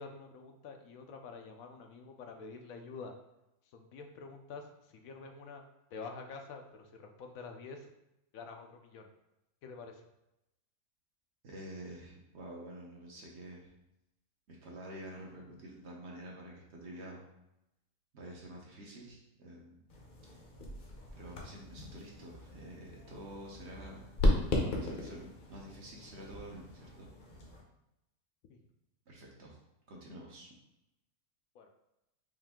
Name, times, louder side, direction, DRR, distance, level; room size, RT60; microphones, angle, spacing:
voice 1, 0.0-3.1 3.7-5.6 5.9-7.9 8.3-9.1 9.6-10.0 28.5-28.6 31.5-31.7, left 4 dB, 75° left, 4 dB, 0.9 m, -47 dB
voice 2, 11.4-13.7 14.5-17.3 18.1-19.8 20.3-20.5 21.1-24.1 24.7-27.1 29.1-29.6 29.9-30.5, right 1 dB, 55° right, -2 dB, 1.0 m, -48 dB
sound 1, 19.9-27.6, left 1 dB, 45° left, 0.8 m, -36 dB
5.1 x 2.7 x 3.5 m, 0.88 s
omnidirectional pair, 1.5 m